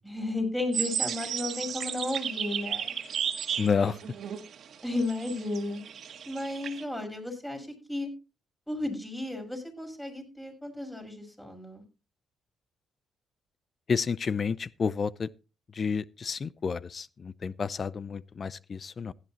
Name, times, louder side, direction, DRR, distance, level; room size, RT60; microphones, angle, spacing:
voice 1, 0.0-2.9 4.8-5.8 6.3-8.1 8.7-11.8, left 2 dB, 5° left, 6.1 m, -33 dB
sound 1, 0.7-6.8, right 8 dB, 60° right, 1.7 m, -34 dB
voice 2, 3.6-4.0 13.9-15.3 15.7-19.1, left 5 dB, 40° left, 0.5 m, -30 dB
16.0 x 11.5 x 2.9 m
cardioid pair, 90°, 0 cm